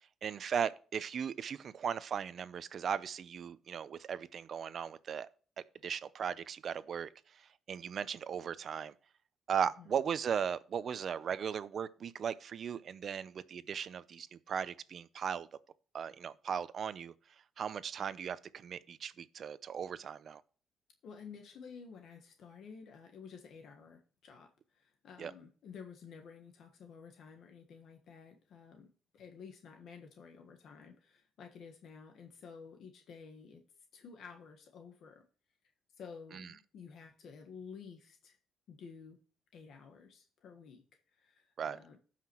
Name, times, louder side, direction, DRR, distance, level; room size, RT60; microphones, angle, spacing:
voice 1, 0.2-5.3 5.8-8.9 9.5-15.5 15.9-17.1 17.6-20.4 25.2-25.3 36.3-36.5 41.6-41.8, right 7 dB, 55° right, 0.6 m, -37 dB
voice 2, 21.0-33.6 33.9-35.3 36.0-38.4 38.7-39.2 39.5-42.0, left 6 dB, 70° left, 1.4 m, -52 dB
16.0 x 5.8 x 3.1 m
cardioid pair, 90°, 0 cm